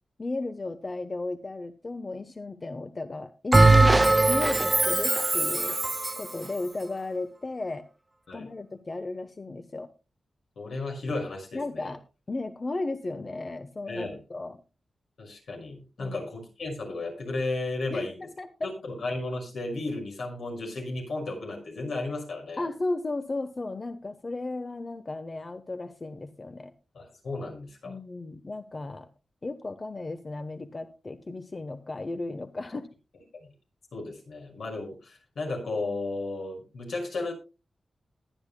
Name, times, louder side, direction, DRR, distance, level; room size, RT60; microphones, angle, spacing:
voice 1, 0.2-5.8 6.2-7.9 8.3-9.9 11.5-12.0 12.3-14.6 16.0-16.3 17.9-18.7 22.6-26.7 27.8-29.1 29.4-32.9, left 2 dB, 35° left, 9 dB, 0.9 m, -35 dB
Bell, 3.5-6.3, right 2 dB, 25° right, 0.6 m, -20 dB
voice 2, 10.6-11.9 13.9-14.2 15.2-18.3 18.6-22.6 26.9-28.0 33.9-37.3, left 2 dB, 85° left, 1 dB, 5.8 m, -34 dB
21.0 x 10.0 x 2.2 m, 0.30 s
wide cardioid pair, 90°, 0 cm